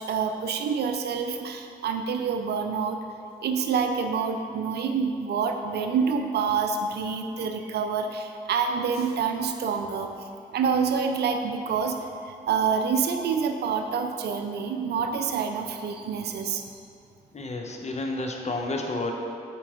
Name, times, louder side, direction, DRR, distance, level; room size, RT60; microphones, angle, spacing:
voice 1, 0.0-3.0 3.4-16.6, right 6 dB, 65° right, 5 dB, 0.5 m, -27 dB
voice 2, 17.3-19.1, left 2 dB, 40° left, 2 dB, 0.8 m, -30 dB
4.5 x 4.4 x 5.0 m, 2.5 s
hypercardioid pair, 40°, 18 cm